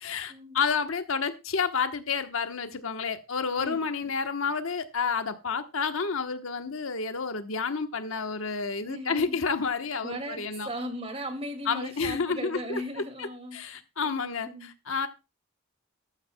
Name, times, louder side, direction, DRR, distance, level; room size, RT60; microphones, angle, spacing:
voice 1, 0.0-10.7 11.7-12.8 13.5-15.1, left 5 dB, 80° left, 1.1 m, -30 dB
voice 2, 3.6-4.1 8.8-9.4 10.0-13.6 14.0-14.7, equal, 30° right, 2.3 m, -38 dB
13.5 x 12.5 x 2.2 m
head